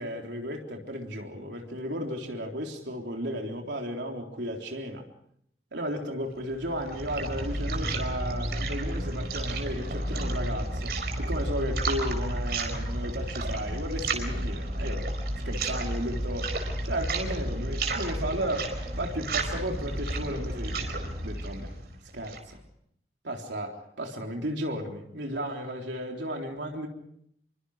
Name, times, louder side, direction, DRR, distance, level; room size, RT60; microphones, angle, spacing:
voice 1, 0.0-5.0 5.7-15.1 15.4-16.5 16.8-21.7 22.1-22.6 23.2-26.9, equal, 80° right, 1 dB, 3.7 m, -34 dB
sound 1, 6.5-22.5, right 1 dB, 60° right, 4.8 m, -31 dB
28.0 x 24.0 x 5.0 m, 0.70 s
head